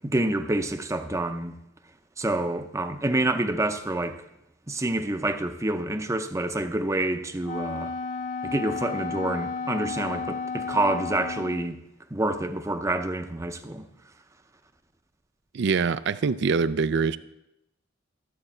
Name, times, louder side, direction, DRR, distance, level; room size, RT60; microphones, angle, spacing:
voice 1, 0.0-1.5 2.2-4.2 4.7-7.9 8.4-11.8 12.1-13.9, right 2 dB, 15° right, 0.6 m, -27 dB
Wind instrument woodwind instrument, 7.4-11.7, left 4 dB, 40° left, 0.4 m, -32 dB
voice 2, 15.5-17.2, right 5 dB, 60° right, 0.4 m, -24 dB
13.0 x 8.0 x 4.3 m
head